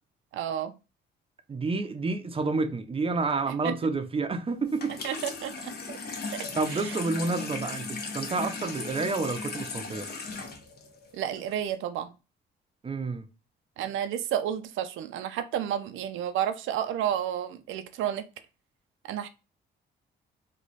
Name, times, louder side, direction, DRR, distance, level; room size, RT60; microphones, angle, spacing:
voice 1, 0.3-0.7 3.5-3.7 4.9-6.0 6.3-7.0 11.1-12.1 13.8-18.2 19.1-19.3, right 10 dB, 80° right, 0.5 m, -31 dB
voice 2, 1.5-5.0 6.1-10.1 12.8-13.2, right 3 dB, 30° right, 0.6 m, -29 dB
Water tap faucet / Sink (filling or washing), 4.7-11.7, left 4 dB, 55° left, 0.9 m, -37 dB
3.1 x 2.3 x 4.0 m
cardioid pair, 90°, 20 cm